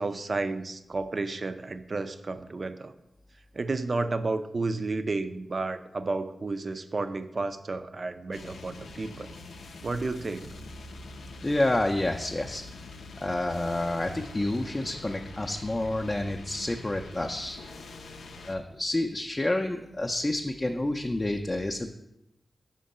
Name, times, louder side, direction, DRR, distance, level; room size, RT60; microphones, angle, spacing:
voice 1, 0.0-2.9 3.5-9.3 9.8-10.5, right 3 dB, 55° right, 11 dB, 0.4 m, -32 dB
sound 1, 8.3-18.6, left 2 dB, 85° left, 0.4 m, -45 dB
voice 2, 11.4-12.6 13.2-17.6 18.4-21.9, left 1 dB, 30° left, 2 dB, 0.4 m, -29 dB
5.1 x 3.7 x 5.3 m, 0.86 s
cardioid pair, 40°, 0 cm